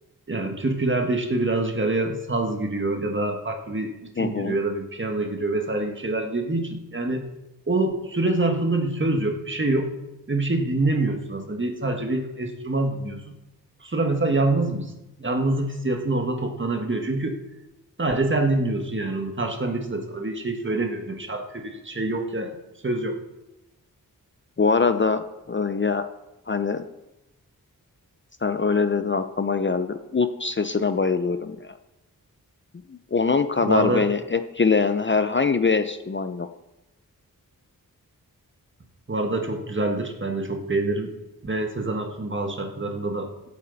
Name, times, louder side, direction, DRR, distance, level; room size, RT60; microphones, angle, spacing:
voice 1, 0.3-7.3 7.7-9.9 10.3-13.4 13.8-14.9 15.2-17.4 18.0-22.6 22.8-23.2 33.6-34.1 39.1-41.1 41.4-43.5, right 2 dB, 35° right, 4 dB, 1.7 m, -26 dB
voice 2, 4.2-4.6 24.6-26.1 26.5-26.8 28.4-31.7 32.9-36.5, left 4 dB, 35° left, 10 dB, 0.6 m, -23 dB
16.5 x 8.6 x 4.1 m, 0.97 s
wide cardioid pair, 75°, 35 cm